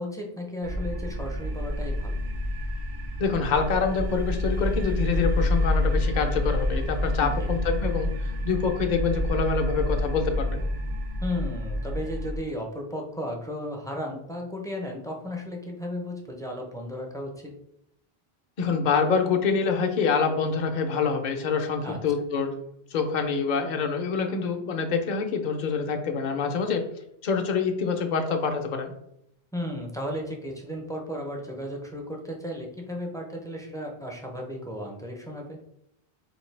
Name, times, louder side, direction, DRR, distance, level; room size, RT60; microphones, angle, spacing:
voice 1, 0.0-2.1 7.2-7.5 11.2-17.5 21.8-22.0 29.5-35.6, left 1 dB, 5° left, 0 dB, 0.5 m, -34 dB
sound 1, 0.6-12.4, left 1 dB, 55° right, 0.8 m, -28 dB
voice 2, 3.2-8.1 8.4-10.6 18.6-22.5 22.9-26.9 27.2-28.9, left 5 dB, 50° left, 4 dB, 0.7 m, -26 dB
4.3 x 2.7 x 3.2 m, 0.79 s
omnidirectional pair, 1.1 m